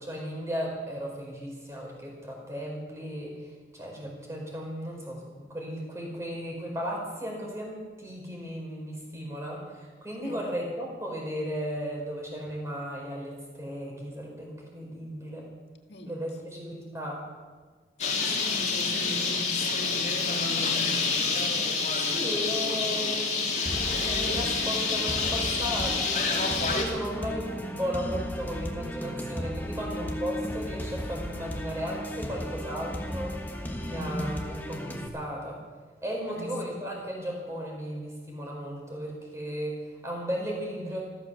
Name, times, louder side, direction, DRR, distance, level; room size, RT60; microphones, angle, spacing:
voice 1, 0.0-15.5 16.1-17.2 22.1-33.4 33.8-35.6 36.0-41.0, equal, 15° right, 4.6 m, -35 dB
voice 2, 18.0-21.0 22.8-23.0 33.9-34.3 36.3-36.8, left 2 dB, 75° left, 1.8 m, -39 dB
Bird, 18.0-26.8, left 4 dB, 40° left, 2.5 m, -28 dB
sound 1, 23.7-35.1, equal, 10° left, 1.3 m, -35 dB
15.0 x 13.5 x 6.8 m
head